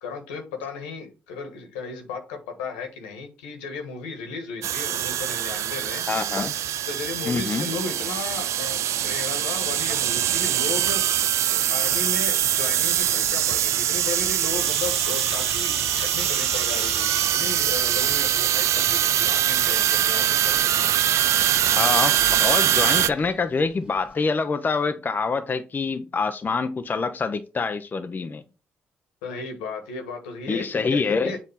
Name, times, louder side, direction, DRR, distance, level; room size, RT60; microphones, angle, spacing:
voice 1, 0.0-6.0 6.9-11.0 11.5-20.9 29.2-31.4, left 4 dB, 85° left, 1.3 m, -35 dB
sound 1, 4.6-23.1, right 11 dB, 65° right, 0.4 m, -23 dB
voice 2, 6.1-6.5 7.2-7.7 21.7-28.4 30.5-31.4, left 4 dB, 35° left, 0.6 m, -26 dB
sound 2, 12.3-24.2, equal, 15° right, 1.9 m, -41 dB
7.2 x 2.7 x 5.6 m
hypercardioid pair, 50°, 5 cm